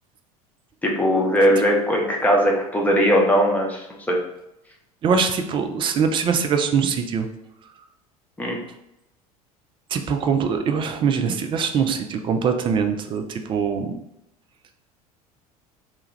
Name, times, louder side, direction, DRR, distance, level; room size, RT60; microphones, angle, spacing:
voice 1, 0.8-4.2 8.4-8.6, equal, 10° left, -1 dB, 0.7 m, -19 dB
voice 2, 5.0-7.3 9.9-13.9, right 6 dB, 25° right, 6 dB, 0.4 m, -22 dB
3.2 x 2.3 x 3.1 m, 0.86 s
figure-of-eight pair, 70°, 19 cm